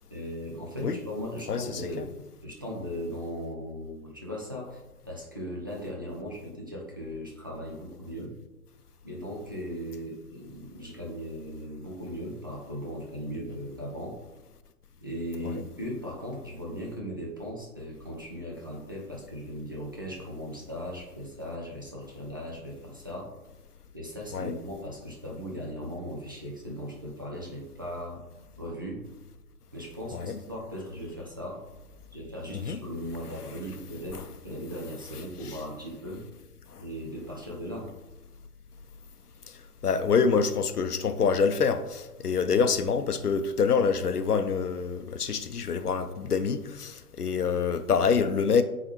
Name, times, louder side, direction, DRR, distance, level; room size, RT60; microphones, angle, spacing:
voice 1, 0.1-2.1 2.4-8.3 9.0-14.2 15.0-23.3 23.9-28.2 28.6-29.0 29.7-31.6 32.1-36.2 36.8-37.9 39.8-40.0, equal, 15° right, 0.4 m, -38 dB
voice 2, 1.5-2.0 15.4-15.5 24.3-24.6 30.1-30.4 32.6-32.8 34.1-34.2 36.7-36.8 39.8-48.6, left 5 dB, 80° left, 0.7 m, -26 dB
8.9 x 3.9 x 3.0 m
figure-of-eight pair, 130°, 45 cm